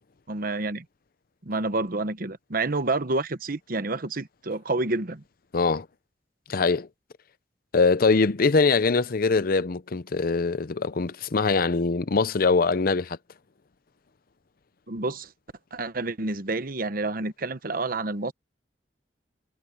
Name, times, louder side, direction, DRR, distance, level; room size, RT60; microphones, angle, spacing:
voice 1, 0.3-0.8 1.4-5.2 14.9-15.3 15.7-18.3, right 2 dB, 55° right, 1.1 m, -29 dB
voice 2, 5.5-5.9 6.5-6.9 7.7-13.2, left 4 dB, 55° left, 0.6 m, -22 dB
head